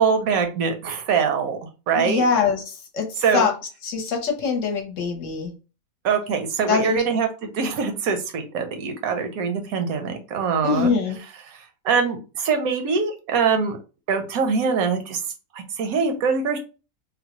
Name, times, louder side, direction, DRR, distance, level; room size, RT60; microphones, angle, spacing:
voice 1, 0.0-1.6 1.9-2.2 3.2-3.5 6.0-10.9 11.4-13.8 14.1-15.2 15.5-16.6, right 5 dB, 80° right, 6 dB, 1.1 m, -23 dB
voice 2, 2.0-2.6 2.9-3.1 3.3-3.5 3.8-5.5 6.7-7.0 10.6-11.2, left 5 dB, 65° left, 3 dB, 1.0 m, -22 dB
3.7 x 2.0 x 2.9 m, 0.32 s
omnidirectional pair, 1.5 m